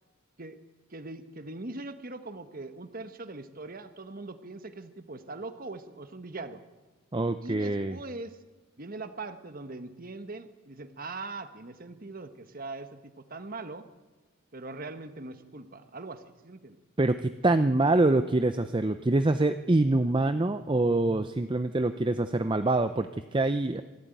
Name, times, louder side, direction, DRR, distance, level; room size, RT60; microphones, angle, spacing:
voice 1, 0.9-6.6 7.4-8.4 8.8-13.8 14.5-16.8, right 3 dB, 45° right, 10 dB, 1.2 m, -41 dB
voice 2, 7.1-8.0 17.0-23.8, right 2 dB, 25° right, 10 dB, 0.6 m, -25 dB
25.5 x 12.5 x 9.2 m, 1.2 s
head